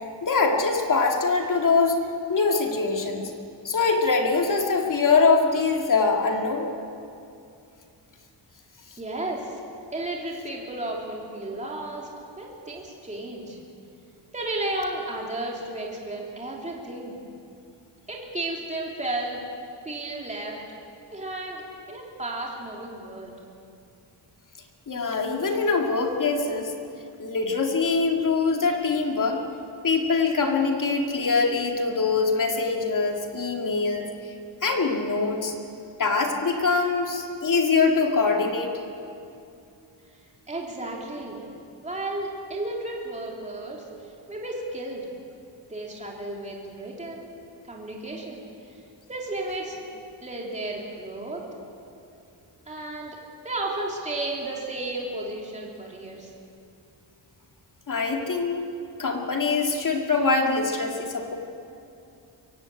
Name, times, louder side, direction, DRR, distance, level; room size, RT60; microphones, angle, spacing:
voice 1, 0.2-2.0 2.3-3.3 3.6-6.7 24.9-26.7 27.2-29.4 29.8-34.1 34.6-35.5 36.0-38.7 57.9-58.7 59.0-61.4, left 4 dB, 45° left, 2 dB, 2.4 m, -23 dB
voice 2, 9.0-9.6 9.9-12.1 12.3-13.6 14.3-17.2 18.1-19.4 19.8-20.6 21.1-23.4 40.5-41.4 41.8-43.8 44.3-45.0 45.7-47.4 47.7-48.4 49.1-49.8 50.2-51.4 52.7-53.2 53.4-56.3, right 2 dB, 15° right, -2 dB, 3.2 m, -33 dB
24.0 x 16.0 x 8.6 m, 2.6 s
wide cardioid pair, 155°, 45 cm